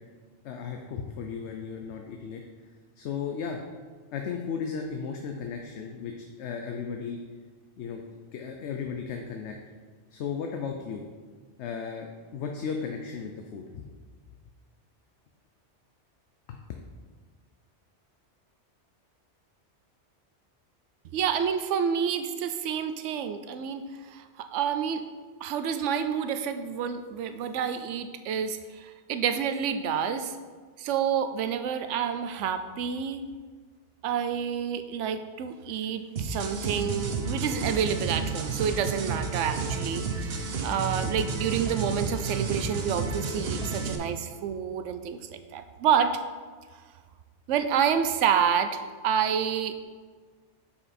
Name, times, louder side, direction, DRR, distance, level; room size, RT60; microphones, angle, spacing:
voice 1, 0.4-2.4 3.0-3.6 4.1-7.2 7.8-8.0 8.3-9.6 10.1-11.1 11.6-13.9 16.5-16.6, left 6 dB, 75° left, 3 dB, 0.9 m, -35 dB
voice 2, 21.0-25.0 25.4-30.4 30.8-33.2 34.0-46.1 47.5-49.8, right 7 dB, 85° right, 9 dB, 0.9 m, -28 dB
sound 1, 36.2-44.0, right 4 dB, 60° right, 1.0 m, -31 dB
6.9 x 5.7 x 4.2 m, 1.5 s
omnidirectional pair, 1.2 m